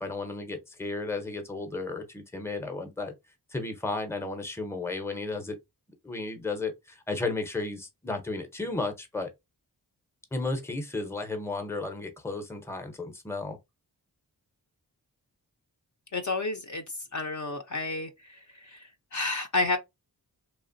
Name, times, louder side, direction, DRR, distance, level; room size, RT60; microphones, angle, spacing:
voice 1, 0.0-3.1 3.5-5.6 6.0-9.3 10.3-13.6, left 3 dB, 5° left, 0.6 m, -33 dB
voice 2, 16.1-16.8 17.1-18.4 18.6-19.8, left 3 dB, 50° left, 0.5 m, -30 dB
2.9 x 2.1 x 2.5 m
wide cardioid pair, 60°, 39 cm